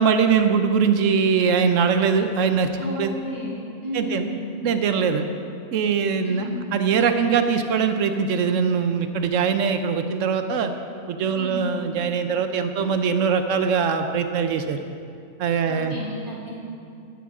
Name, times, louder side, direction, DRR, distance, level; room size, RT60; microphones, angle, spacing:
voice 1, 0.0-2.7 3.0-3.1 3.9-4.3 4.6-5.2 5.7-10.7 11.1-14.8 15.4-16.0, right 6 dB, 70° right, 8 dB, 1.1 m, -22 dB
voice 2, 2.8-3.5 3.8-4.4 6.2-6.6 11.3-11.6 15.7-16.6, equal, 30° right, -7 dB, 2.8 m, -32 dB
12.5 x 12.0 x 3.7 m, 2.4 s
omnidirectional pair, 1.4 m